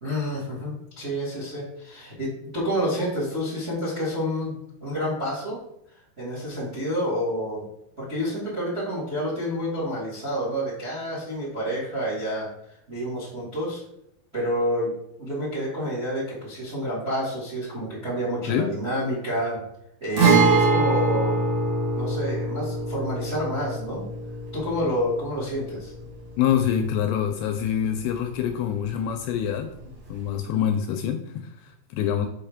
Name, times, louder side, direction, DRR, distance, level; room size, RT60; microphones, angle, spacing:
voice 1, 0.0-4.5 4.8-5.6 6.2-7.6 8.0-12.5 12.9-13.8 14.3-14.9 15.2-19.6 20.0-21.4 21.9-24.0 24.5-25.9, equal, 40° right, -6 dB, 0.9 m, -28 dB
Guitar, 20.2-27.8 28.0-28.1 30.2-30.3, right 3 dB, 80° right, 1.2 m, -24 dB
voice 2, 26.4-29.7 30.1-32.3, left 9 dB, 85° left, 6 dB, 2.5 m, -25 dB
6.4 x 5.6 x 3.5 m, 0.78 s
omnidirectional pair, 5.3 m